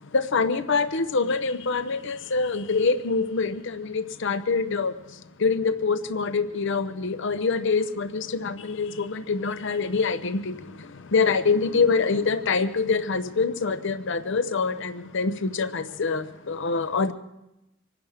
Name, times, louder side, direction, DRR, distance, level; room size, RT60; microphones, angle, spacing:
voice 1, 0.1-17.1, left 4 dB, 60° left, 11 dB, 0.7 m, -25 dB
25.5 x 11.0 x 5.0 m, 0.90 s
head